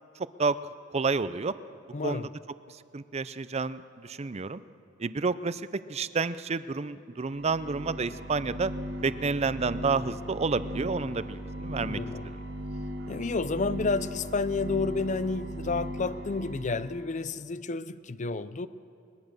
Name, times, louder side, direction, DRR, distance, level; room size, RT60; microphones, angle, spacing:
voice 1, 0.2-0.6 0.9-1.5 2.0-2.3 2.7-4.6 5.0-8.7 9.0-12.0, right 4 dB, 35° right, 15 dB, 0.5 m, -30 dB
voice 2, 1.9-2.3 11.8-12.3 13.1-18.7, left 3 dB, 40° left, 15 dB, 0.6 m, -30 dB
sound 1, 7.3-16.9, equal, 55° right, 2.0 m, -38 dB
22.0 x 20.5 x 6.7 m, 2.6 s
head